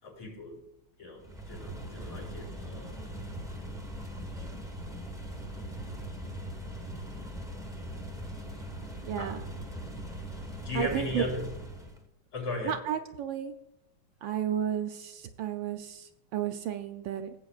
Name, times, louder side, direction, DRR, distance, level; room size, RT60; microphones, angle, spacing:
voice 1, 0.0-0.6 1.0-3.1 9.2-9.4 10.6-11.4 12.3-12.8, left 2 dB, 75° left, -5 dB, 5.0 m, -37 dB
sound 1, 1.2-12.0, equal, 5° right, 0.6 m, -40 dB
voice 2, 9.0-9.4 10.7-11.2 12.6-13.5 14.2-17.3, right 10 dB, 75° right, 7 dB, 1.2 m, -33 dB
17.0 x 8.0 x 2.4 m, 0.89 s
omnidirectional pair, 2.4 m